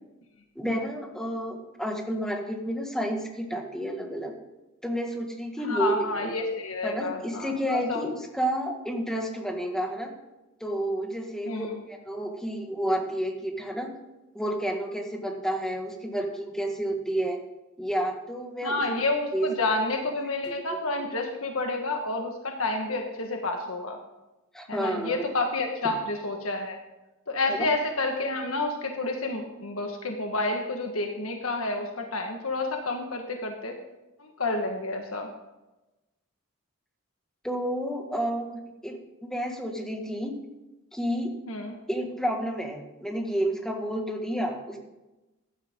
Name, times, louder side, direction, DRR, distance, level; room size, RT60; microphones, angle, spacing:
voice 1, 0.6-4.3 4.8-6.4 6.8-10.1 10.6-13.9 14.3-17.4 17.8-18.8 19.3-19.5 20.5-20.8 24.5-25.2 27.5-27.7 37.4-40.4 40.9-41.3 41.9-44.8, right 1 dB, 5° left, 2 dB, 1.9 m, -30 dB
voice 2, 5.6-8.0 11.4-11.8 18.6-24.0 24.7-26.8 27.3-33.8 34.2-35.3 41.5-41.7, left 2 dB, 75° left, 3 dB, 1.5 m, -29 dB
16.0 x 11.5 x 3.8 m, 1.0 s
head